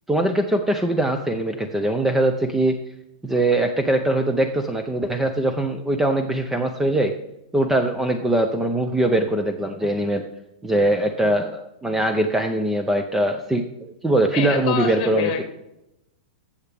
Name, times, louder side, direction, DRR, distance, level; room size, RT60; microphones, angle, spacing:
voice 1, 0.1-2.8 3.2-7.1 7.5-10.2 10.6-15.4, right 1 dB, 5° right, 6 dB, 0.5 m, -22 dB
voice 2, 14.3-15.4, left 7 dB, 35° left, 6 dB, 2.0 m, -26 dB
15.0 x 7.1 x 3.4 m, 0.85 s
supercardioid pair, 155°, 4 cm